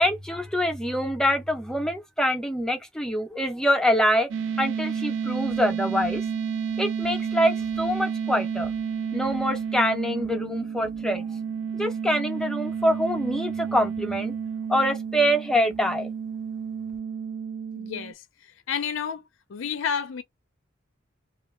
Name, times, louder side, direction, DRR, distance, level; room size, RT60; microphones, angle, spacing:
voice 1, 0.0-4.3 4.6-6.2 6.8-8.7 9.1-11.2 11.8-14.3 14.7-16.1, equal, 5° left, 0.5 m, -25 dB
sound 1, 4.3-18.1, right 6 dB, 65° right, 0.4 m, -31 dB
voice 2, 17.8-19.2 19.5-20.2, left 7 dB, 65° left, 0.4 m, -31 dB
2.3 x 2.1 x 3.1 m
head